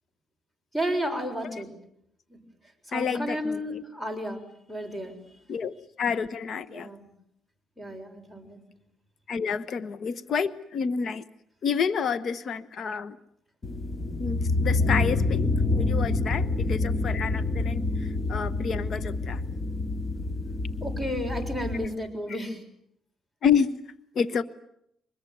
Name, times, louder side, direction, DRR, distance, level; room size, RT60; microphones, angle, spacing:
voice 1, 0.7-1.7 2.3-2.4 2.9-4.4 4.7-5.2 6.7-7.1 7.8-8.6 20.8-22.6, equal, 15° left, 8 dB, 7.0 m, -32 dB
voice 2, 2.9-3.8 5.5-6.9 9.3-11.2 11.6-13.2 14.2-15.5 15.8-19.4 22.3-22.4 23.4-23.7 24.1-24.4, left 6 dB, 60° left, 15 dB, 1.1 m, -29 dB
sound 1, 13.6-21.9, left 2 dB, 30° left, 2.5 m, -27 dB
25.0 x 21.5 x 9.3 m, 0.73 s
cardioid pair, 90°, 0 cm